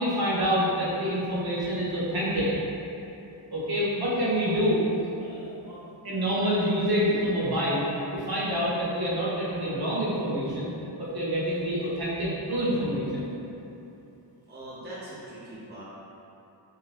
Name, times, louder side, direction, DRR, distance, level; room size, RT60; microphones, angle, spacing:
voice 1, 0.0-2.5 3.5-4.8 5.2-5.8 6.0-7.9 8.1-10.7 11.0-13.3, equal, 55° right, -8 dB, 1.1 m, -27 dB
voice 2, 14.5-15.8, right 1 dB, 20° right, -8 dB, 0.6 m, -41 dB
3.7 x 3.3 x 2.9 m, 2.9 s
wide cardioid pair, 80°, 45 cm